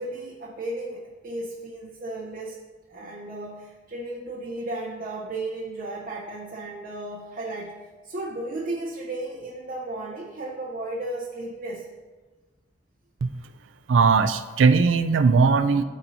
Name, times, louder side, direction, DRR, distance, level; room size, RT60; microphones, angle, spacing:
voice 1, 0.0-2.6 2.9-11.9, right 2 dB, 50° right, -4 dB, 0.8 m, -34 dB
voice 2, 13.9-15.8, right 4 dB, 70° right, 11 dB, 0.4 m, -19 dB
13.0 x 4.4 x 2.7 m, 1.3 s
head